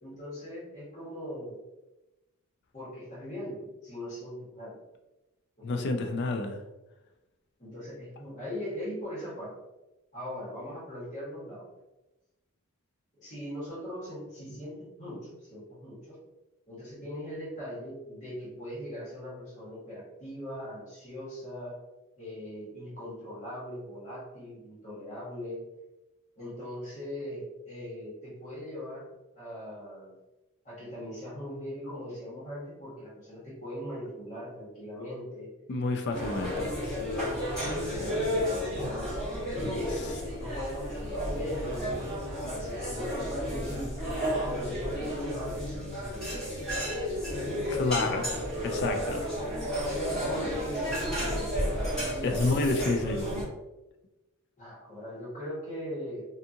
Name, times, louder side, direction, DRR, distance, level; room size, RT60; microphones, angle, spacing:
voice 1, 0.0-1.5 2.7-4.8 5.6-5.9 7.6-9.5 10.1-11.7 13.2-16.2 16.7-21.8 22.2-25.6 26.3-29.1 29.3-30.1 30.6-35.5 36.0-36.6 37.1-39.1 39.4-44.0 44.5-46.6 50.0-53.0 54.6-56.3, equal, 35° left, -8 dB, 1.4 m, -40 dB
voice 2, 5.6-6.6 35.7-37.0 47.7-48.3 48.6-49.3 52.2-53.3, left 3 dB, 50° left, 5 dB, 0.4 m, -29 dB
sound 1, 36.1-53.4, equal, 5° left, 1.2 m, -32 dB
2.7 x 2.4 x 2.6 m, 1.0 s
head